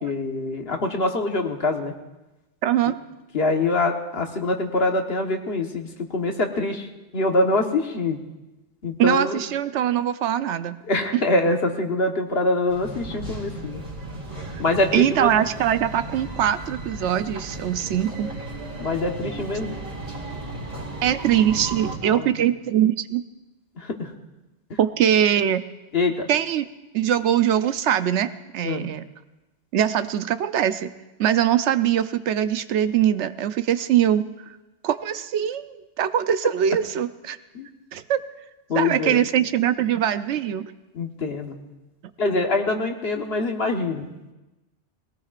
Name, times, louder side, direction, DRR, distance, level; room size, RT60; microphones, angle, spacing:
voice 1, 0.0-1.9 3.3-8.2 8.8-9.4 10.9-13.8 14.6-15.3 18.8-19.7 22.0-22.4 23.8-24.1 24.7-24.8 25.9-26.3 28.6-28.9 37.5-37.7 38.7-39.2 40.9-41.6 42.2-44.1, left 2 dB, 60° left, 3 dB, 1.5 m, -24 dB
voice 2, 2.6-3.0 9.0-10.8 14.4-14.6 14.9-18.3 21.0-23.2 24.8-25.6 26.3-26.7 26.9-29.1 29.7-30.9 31.2-34.2 34.8-37.4 37.9-38.2 38.7-40.6, right 10 dB, 80° right, 12 dB, 0.9 m, -22 dB
sound 1, 12.7-22.0, right 2 dB, 45° right, 3.2 m, -35 dB
21.0 x 17.5 x 2.5 m, 1.1 s
omnidirectional pair, 1.2 m